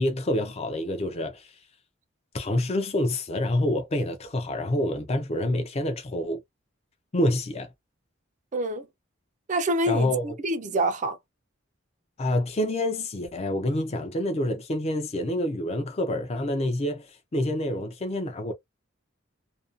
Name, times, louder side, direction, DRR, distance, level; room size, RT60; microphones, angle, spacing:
voice 1, 0.0-1.5 2.3-6.4 7.1-7.7 9.9-10.3 12.2-18.5, left 1 dB, 30° left, 0.5 m, -27 dB
voice 2, 8.5-8.9 9.5-11.2, right 1 dB, 40° right, 0.5 m, -26 dB
2.6 x 2.3 x 2.4 m
head